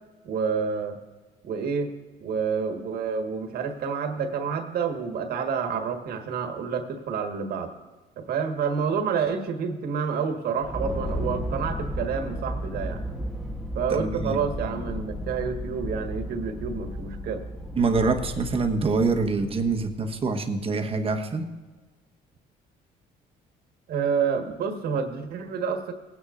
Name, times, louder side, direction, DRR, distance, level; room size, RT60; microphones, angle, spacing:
voice 1, 0.2-1.0 1.4-1.9 2.2-7.7 8.2-13.0 13.7-17.4 23.9-25.9, right 6 dB, 65° right, 5 dB, 1.6 m, -28 dB
sound 1, 10.6-20.2, equal, ahead, 1.1 m, -34 dB
voice 2, 13.9-14.4 17.8-21.5, right 4 dB, 35° right, 5 dB, 1.2 m, -25 dB
19.0 x 9.7 x 2.5 m, 1.3 s
cardioid pair, 110°, 17 cm